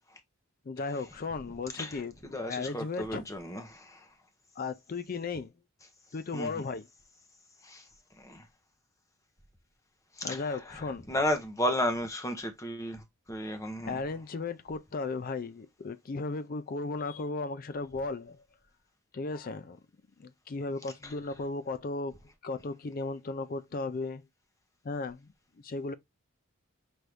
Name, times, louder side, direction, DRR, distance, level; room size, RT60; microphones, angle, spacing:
voice 1, 0.7-3.2 4.6-5.5 6.1-6.9 10.2-11.1 13.8-18.4 19.1-19.8 20.2-24.2 24.8-25.3 25.6-25.9, left 3 dB, 40° left, 0.4 m, -36 dB
voice 2, 2.3-4.0 6.3-6.5 7.6-7.8 8.2-8.4 10.2-14.0 21.0-21.1, left 1 dB, 15° left, 0.8 m, -33 dB
6.1 x 2.6 x 3.3 m
head